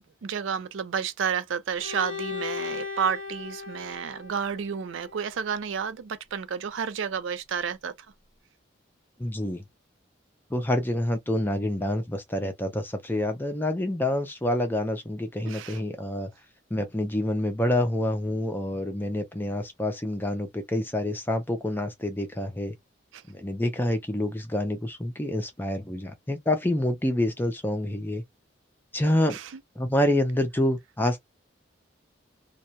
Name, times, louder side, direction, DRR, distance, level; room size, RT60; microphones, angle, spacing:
voice 1, 0.0-7.9 15.5-15.8 23.1-23.2 29.3-29.5, right 7 dB, 75° right, 0.4 m, -31 dB
Bowed string instrument, 1.8-5.6, left 6 dB, 75° left, 0.7 m, -37 dB
voice 2, 9.2-9.6 10.5-16.3 16.7-22.8 23.3-28.2 28.9-29.4 29.8-31.3, left 1 dB, 10° left, 0.4 m, -27 dB
2.2 x 2.0 x 2.7 m
head